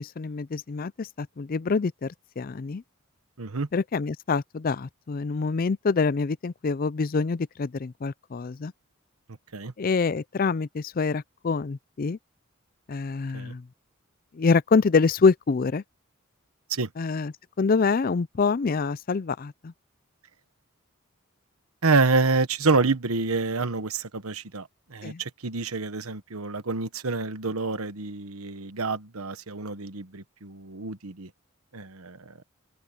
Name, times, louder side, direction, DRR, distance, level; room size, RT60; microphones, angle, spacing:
voice 1, 0.0-2.8 3.7-8.7 9.8-12.2 12.9-13.6 14.3-15.8 17.0-19.7 25.0-25.2, left 4 dB, 40° left, 0.4 m, -26 dB
voice 2, 3.4-3.7 9.5-9.7 13.3-13.5 16.7-16.9 21.8-31.3 31.7-32.3, right 3 dB, 85° right, 1.2 m, -27 dB
open air
head